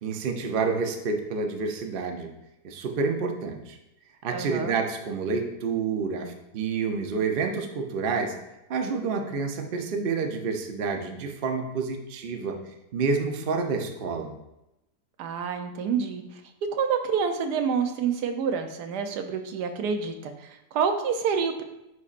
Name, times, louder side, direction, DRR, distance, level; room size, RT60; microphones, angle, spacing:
voice 1, 0.0-2.3 2.6-3.8 4.2-8.3 8.7-12.6 12.9-14.4, right 4 dB, 55° right, 4 dB, 0.6 m, -28 dB
voice 2, 4.3-4.7 15.2-16.4 16.7-21.6, right 6 dB, 85° right, 6 dB, 1.2 m, -28 dB
9.4 x 4.1 x 2.5 m, 0.91 s
omnidirectional pair, 1.7 m